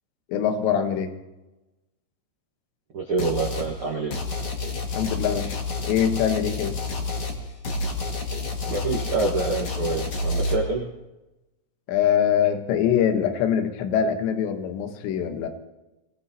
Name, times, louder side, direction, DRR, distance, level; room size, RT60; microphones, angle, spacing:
voice 1, 0.3-1.1 5.0-5.6 5.9-6.8 11.9-15.5, left 8 dB, 80° left, 6 dB, 3.4 m, -23 dB
voice 2, 2.9-4.1 8.6-10.9, right 3 dB, 80° right, 0 dB, 1.2 m, -26 dB
sound 1, 3.2-3.7 4.1-10.6, left 3 dB, 45° left, 1.9 m, -29 dB
23.5 x 18.0 x 2.9 m, 1.0 s
omnidirectional pair, 5.1 m